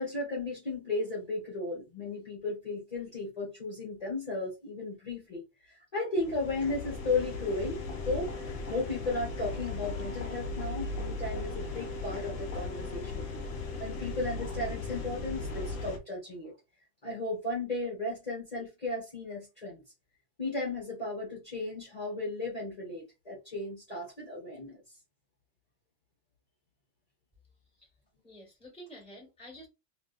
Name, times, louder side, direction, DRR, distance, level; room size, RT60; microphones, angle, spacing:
voice 1, 0.0-13.2 13.8-16.5 17.0-19.8 20.4-24.8, left 2 dB, 30° left, 1.5 m, -35 dB
sound 1, 6.2-16.0, left 3 dB, 75° left, 1.0 m, -37 dB
voice 2, 28.2-29.7, equal, 5° left, 1.9 m, -49 dB
3.4 x 2.8 x 2.6 m
omnidirectional pair, 1.3 m